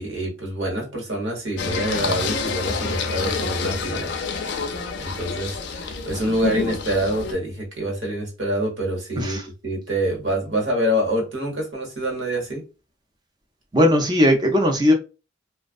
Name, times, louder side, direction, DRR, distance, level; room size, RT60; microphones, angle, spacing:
voice 1, 0.0-4.1 5.0-9.4 9.6-12.6, right 1 dB, 80° right, 1.2 m, -26 dB
Singing, 1.6-7.3, left 4 dB, 65° left, 0.4 m, -28 dB
voice 2, 13.7-14.9, left 1 dB, 20° right, 0.5 m, -18 dB
2.4 x 2.2 x 2.5 m
head